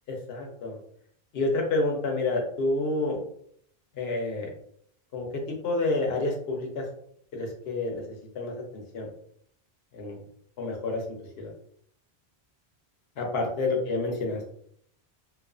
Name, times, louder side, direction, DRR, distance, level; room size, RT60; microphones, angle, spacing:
voice 1, 0.3-0.8 1.3-3.2 3.9-4.5 5.1-5.3 5.6-6.8 7.3-9.1 9.9-10.2 10.6-11.0 11.4-11.5 13.2-14.4, left 2 dB, 70° left, 1 dB, 0.9 m, -29 dB
2.4 x 2.3 x 2.4 m, 0.66 s
omnidirectional pair, 1.1 m